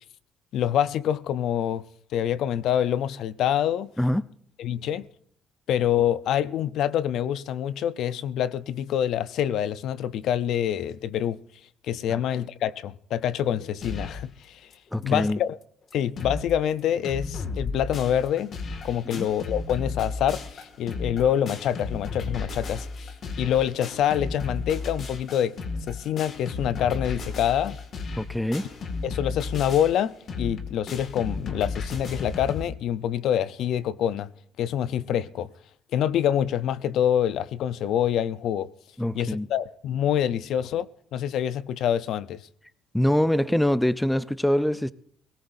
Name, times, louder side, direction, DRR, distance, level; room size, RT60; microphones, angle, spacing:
voice 1, 0.5-1.8 2.1-3.9 4.6-5.1 5.7-11.4 11.9-14.6 15.0-15.6 15.9-18.6 18.8-22.9 23.4-25.6 25.9-27.8 29.0-34.3 34.6-35.5 35.9-38.7 39.1-42.4, left 10 dB, 70° left, 0.6 m, -26 dB
sound 1, 13.8-14.3 14.7-14.8 15.0-15.1 15.6-15.7 15.9-16.5 16.8-32.6, left 4 dB, 45° left, 2.0 m, -34 dB
voice 2, 14.9-15.4 19.1-19.3 28.2-28.7 39.0-39.5 42.9-44.9, left 1 dB, 5° left, 0.6 m, -24 dB
20.0 x 18.5 x 2.6 m
cardioid pair, 130°, 0 cm